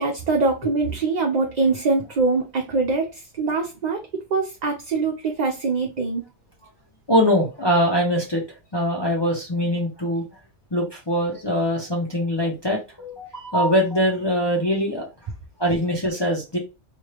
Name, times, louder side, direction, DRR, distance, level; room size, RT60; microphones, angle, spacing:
voice 1, 0.0-4.0 4.3-6.2, right 3 dB, 45° right, 1 dB, 0.6 m, -23 dB
voice 2, 7.1-8.4 8.7-10.2 10.7-15.1 15.6-16.6, equal, 25° left, -1 dB, 0.8 m, -22 dB
4.4 x 2.5 x 3.2 m, 0.27 s
omnidirectional pair, 1.2 m